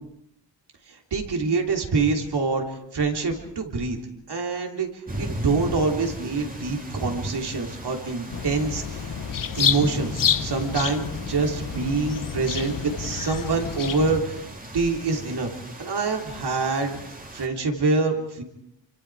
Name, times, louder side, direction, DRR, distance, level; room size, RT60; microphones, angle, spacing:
voice 1, 1.1-2.6 2.9-4.0 4.3-4.9 5.2-9.1 9.6-14.4 14.7-15.5 15.8-17.0 17.3-18.4, right 4 dB, 60° right, 2 dB, 3.6 m, -25 dB
sound 1, 5.1-17.5, right 1 dB, 20° right, 2.7 m, -37 dB
sound 2, 8.3-14.2, left 8 dB, 45° left, 0.9 m, -29 dB
27.5 x 24.5 x 4.9 m, 0.79 s
cardioid pair, 80°, 44 cm